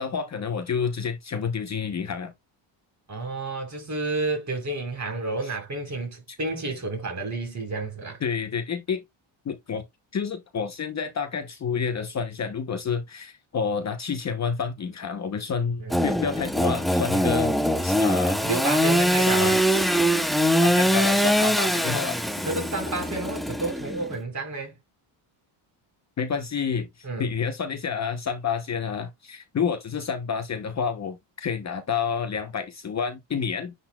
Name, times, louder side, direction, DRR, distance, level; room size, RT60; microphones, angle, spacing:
voice 1, 0.0-2.3 5.4-5.5 6.3-6.4 8.2-9.0 9.4-9.8 10.1-18.4 19.1-19.8 20.6-22.3 26.2-33.7, left 6 dB, 35° left, 0.8 m, -29 dB
voice 2, 3.1-8.2 15.8-15.9 18.4-19.6 22.4-24.7 27.0-27.3, right 2 dB, 35° right, 4.8 m, -30 dB
Engine / Sawing, 15.9-24.1, equal, ahead, 0.7 m, -23 dB
10.5 x 4.1 x 2.3 m
cardioid pair, 130°, 50 cm